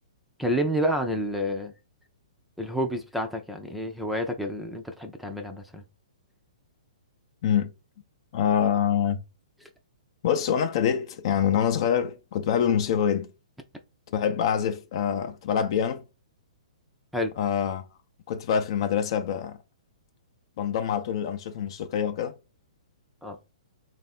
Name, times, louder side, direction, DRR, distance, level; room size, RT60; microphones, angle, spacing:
voice 1, 0.4-1.7 2.6-5.8 17.1-17.3 23.2-23.4, equal, ahead, 0.5 m, -29 dB
voice 2, 8.3-9.2 10.2-13.3 14.1-16.0 17.4-17.8 18.3-19.6 20.6-22.3, left 8 dB, 50° left, 0.6 m, -25 dB
3.3 x 2.5 x 4.2 m
hypercardioid pair, 140°, 4 cm